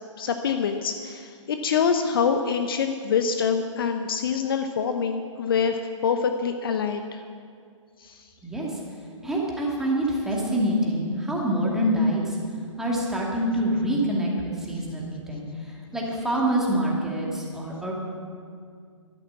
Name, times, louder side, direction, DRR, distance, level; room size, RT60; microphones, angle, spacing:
voice 1, 0.2-7.2 8.0-8.3, left 6 dB, 45° left, 7 dB, 0.8 m, -25 dB
voice 2, 8.4-8.8 9.2-12.4 12.8-14.3 14.6-17.9, right 1 dB, 5° right, -4 dB, 2.3 m, -26 dB
13.0 x 11.0 x 7.2 m, 2.2 s
figure-of-eight pair, 130°, 17 cm